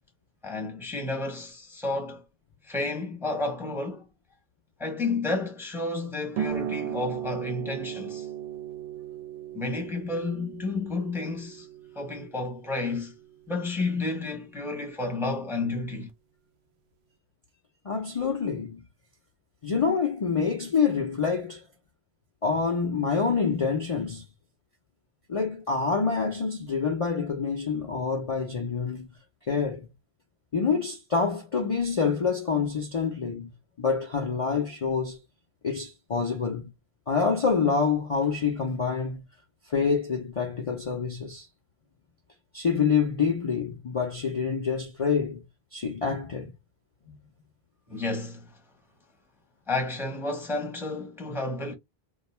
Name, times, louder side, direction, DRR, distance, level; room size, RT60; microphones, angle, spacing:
voice 1, 0.4-2.2 2.6-4.1 4.8-8.3 9.5-11.7 11.9-13.1 13.5-16.1 47.9-48.6 49.7-51.7, left 3 dB, ahead, 0.7 m, -31 dB
sound 1, 6.4-13.5, right 9 dB, 75° right, 0.8 m, -37 dB
voice 2, 17.8-18.8 19.6-21.6 22.4-24.2 25.3-29.1 29.5-29.9 30.5-33.5 33.8-35.2 35.6-36.7 37.1-39.2 39.7-41.5 42.5-45.4 45.7-46.5, left 5 dB, 40° left, 0.6 m, -27 dB
2.5 x 2.3 x 4.1 m
omnidirectional pair, 1.1 m